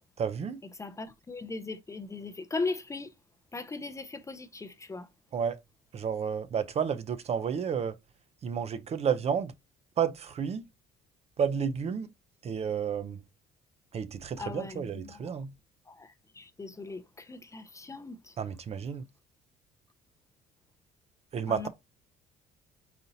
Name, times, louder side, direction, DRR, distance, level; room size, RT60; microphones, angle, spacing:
voice 1, 0.2-0.6 5.3-5.6 5.9-8.0 8.4-9.5 10.0-10.7 11.4-12.1 12.4-13.2 13.9-15.5 18.4-19.0 21.3-21.7, right 7 dB, 40° right, 0.5 m, -31 dB
voice 2, 0.8-3.1 3.5-5.1 14.4-15.3 15.9-18.4 21.5-21.7, left 3 dB, 20° left, 0.5 m, -38 dB
4.1 x 2.7 x 3.8 m
cardioid pair, 110°, 17 cm